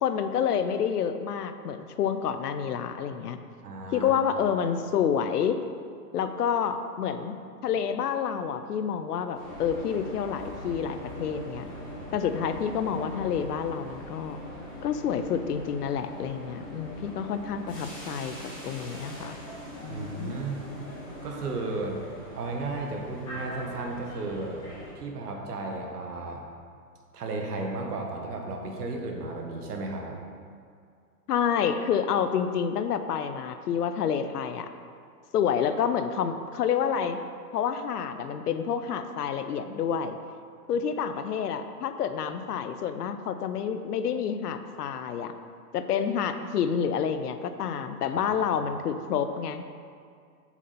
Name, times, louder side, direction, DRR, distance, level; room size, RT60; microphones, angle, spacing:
voice 1, 0.0-3.4 3.9-5.6 6.1-7.3 7.6-11.7 12.1-14.4 14.8-18.4 18.6-19.4 19.8-20.3 31.3-34.7 35.3-37.2 37.5-40.2 40.7-45.3 45.7-49.6, left 7 dB, 65° left, 9 dB, 0.6 m, -28 dB
voice 2, 3.6-4.2 19.9-20.7 21.2-22.0 22.3-24.6 25.0-26.4 27.1-30.2 48.1-48.2, right 3 dB, 65° right, 1 dB, 1.5 m, -34 dB
sound 1, 9.3-24.9, equal, 10° left, 1.5 m, -41 dB
7.2 x 6.8 x 4.1 m, 2.2 s
hypercardioid pair, 170°, 49 cm